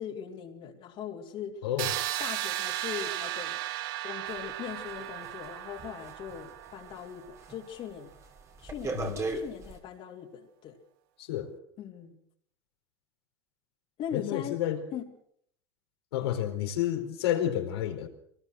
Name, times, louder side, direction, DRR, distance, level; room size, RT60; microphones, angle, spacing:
voice 1, 0.0-1.6 2.2-3.6 4.0-8.1 8.6-10.8 11.8-12.2 14.0-14.6 14.9-15.1, left 8 dB, 45° left, 0 dB, 3.1 m, -40 dB
sound 1, 1.8-7.6, right 15 dB, 70° right, 1.1 m, -35 dB
sound 2, 4.3-7.1 7.4-7.7 8.1-9.8, right 3 dB, 25° right, 2.9 m, -38 dB
voice 2, 11.2-11.5 14.1-14.8 16.1-18.1, left 11 dB, 85° left, 5 dB, 4.3 m, -30 dB
23.5 x 19.5 x 6.4 m, 0.66 s
supercardioid pair, 120°, 13 cm